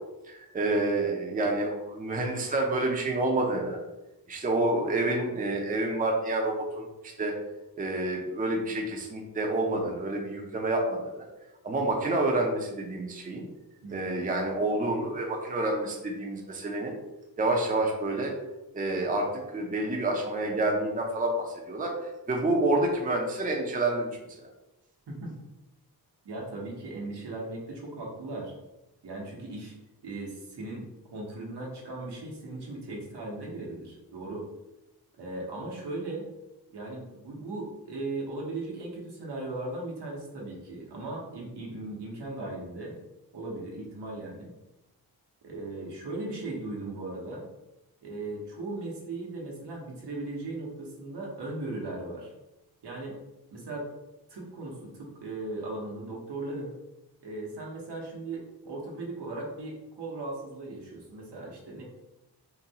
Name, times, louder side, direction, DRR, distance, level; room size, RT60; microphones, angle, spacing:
voice 1, 0.2-3.8 4.3-7.3 7.8-11.3 11.6-13.5 13.9-16.9 17.4-18.3 18.7-24.5, right 2 dB, 20° right, 0 dB, 0.5 m, -28 dB
voice 2, 13.8-14.2 25.1-25.3 26.2-28.5 29.0-29.7 30.0-30.8 31.1-34.4 35.1-36.2 36.7-42.9 43.3-44.5 45.4-47.5 48.0-52.3 52.8-53.2 53.5-53.9 54.3-56.7 57.2-61.8, right 2 dB, 85° right, -2 dB, 1.0 m, -37 dB
3.9 x 2.2 x 2.8 m, 0.98 s
wide cardioid pair, 95°, 39 cm